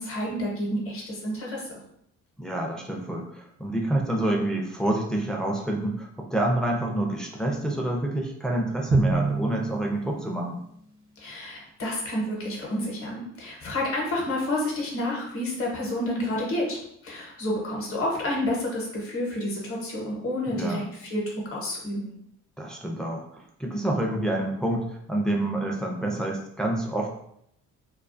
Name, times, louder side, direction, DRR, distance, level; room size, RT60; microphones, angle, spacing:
voice 1, 0.0-1.6 11.2-22.1, left 1 dB, 50° left, -2 dB, 0.8 m, -29 dB
voice 2, 2.4-10.6 20.5-20.9 22.6-27.1, right 1 dB, ahead, 0 dB, 0.4 m, -28 dB
Drum, 8.9-10.6, right 3 dB, 80° right, 0.8 m, -26 dB
2.3 x 2.3 x 2.5 m, 0.73 s
cardioid pair, 90°, 30 cm